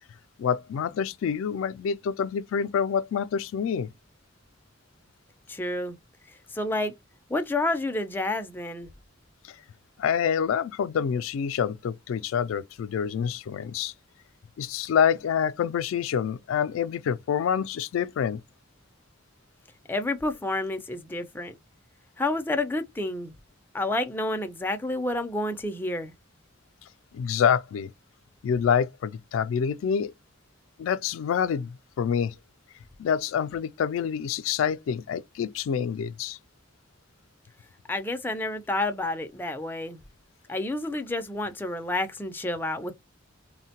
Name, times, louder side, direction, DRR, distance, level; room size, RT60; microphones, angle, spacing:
voice 1, 0.4-3.9 9.5-9.6 10.0-13.9 14.6-18.4 27.1-27.9 28.4-30.1 30.8-32.3 33.0-36.4, left 7 dB, 90° left, 0.3 m, -27 dB
voice 2, 5.5-6.0 6.3-6.9 7.3-8.9 19.9-21.5 22.2-23.3 23.7-26.1 37.9-40.0 40.5-43.0, left 2 dB, 10° left, 0.4 m, -29 dB
3.6 x 2.1 x 2.8 m
head